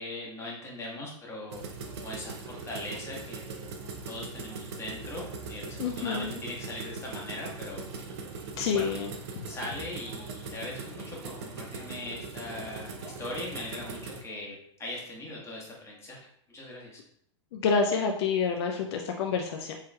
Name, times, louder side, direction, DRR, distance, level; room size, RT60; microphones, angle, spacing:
voice 1, 0.0-1.7 1.9-3.4 4.0-7.8 8.7-8.9 9.5-17.0, left 1 dB, 15° left, -3 dB, 1.3 m, -40 dB
sound 1, 1.5-14.2, right 4 dB, 60° right, 0.6 m, -40 dB
voice 2, 5.8-6.3 8.6-9.1 17.5-19.8, left 5 dB, 60° left, 2 dB, 0.5 m, -28 dB
4.7 x 2.9 x 2.3 m, 0.69 s
hypercardioid pair, 100°, 16 cm